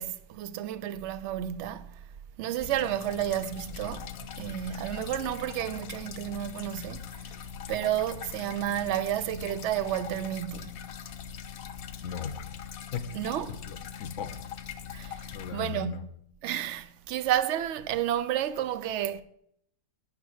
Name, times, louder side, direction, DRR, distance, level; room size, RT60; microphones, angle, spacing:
voice 1, 0.0-2.0 2.4-7.3 7.7-10.8 13.1-13.6 14.9-15.9 16.4-19.2, right 11 dB, 65° right, 0.8 m, -31 dB
sound 1, 2.6-15.5, left 8 dB, 90° left, 1.2 m, -42 dB
voice 2, 12.0-12.4 12.9-13.1 13.5-14.3 15.3-16.0, left 8 dB, 65° left, 1.2 m, -37 dB
9.7 x 5.2 x 7.9 m
omnidirectional pair, 1.4 m